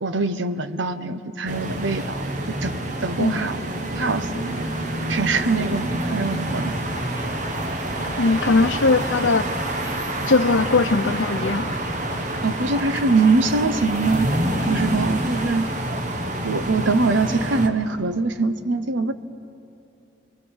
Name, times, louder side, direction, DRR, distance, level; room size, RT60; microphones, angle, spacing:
voice 1, 0.0-2.2 2.6-3.6 4.0-4.7 5.1-6.6 12.4-14.3 14.6-15.7 16.4-19.1, right 3 dB, 75° right, 11 dB, 1.0 m, -23 dB
sound 1, 1.5-17.7, right 1 dB, 40° right, 1.5 m, -27 dB
sound 2, 6.9-15.4, left 3 dB, 25° left, 1.4 m, -42 dB
voice 2, 8.2-9.5 10.3-11.7, left 3 dB, 85° left, 11 dB, 0.8 m, -20 dB
29.0 x 23.0 x 6.5 m, 2.8 s
head